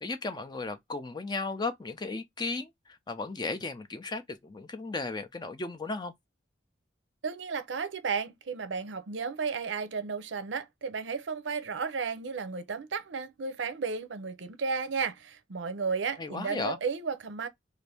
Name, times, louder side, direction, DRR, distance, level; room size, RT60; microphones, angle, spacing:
voice 1, 0.0-6.1 16.2-16.8, left 3 dB, 25° left, 0.4 m, -35 dB
voice 2, 7.2-17.5, right 5 dB, 80° right, 0.6 m, -33 dB
2.6 x 2.5 x 3.3 m
head